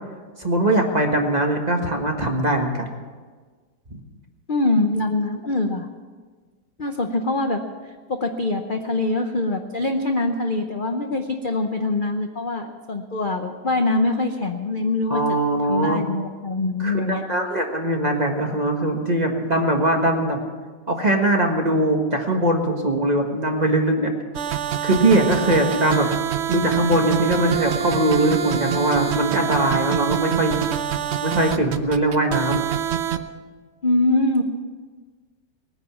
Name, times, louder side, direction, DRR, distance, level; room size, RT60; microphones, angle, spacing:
voice 1, 0.4-2.9 3.9-4.0 15.1-16.0 16.8-20.4 20.9-24.1 24.8-26.1 26.5-30.6 31.2-32.6, right 1 dB, 25° right, 2 dB, 1.4 m, -21 dB
voice 2, 4.5-5.9 6.8-7.6 8.1-15.2 15.6-17.2 33.8-34.4, left 2 dB, 45° left, 5 dB, 0.7 m, -23 dB
sound 1, 24.3-33.2, right 10 dB, 65° right, 0.6 m, -25 dB
20.0 x 9.9 x 7.1 m, 1.5 s
omnidirectional pair, 2.0 m